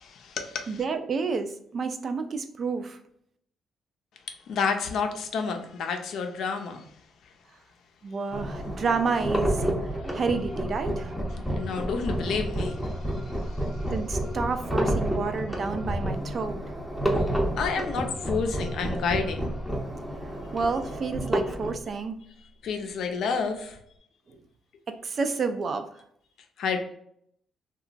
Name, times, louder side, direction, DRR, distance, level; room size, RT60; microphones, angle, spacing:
voice 1, 0.0-0.8 4.5-6.8 11.5-13.2 13.5-13.6 17.6-19.5 22.6-23.8 26.6-26.8, left 5 dB, 75° left, 5 dB, 0.5 m, -30 dB
voice 2, 0.7-3.0 8.0-11.1 13.9-16.6 20.5-22.2 24.9-26.0, right 4 dB, 50° right, 8 dB, 0.3 m, -30 dB
sound 1, 8.3-21.8, right 1 dB, ahead, 0.6 m, -30 dB
2.8 x 2.3 x 2.5 m, 0.69 s
cardioid pair, 90°, 0 cm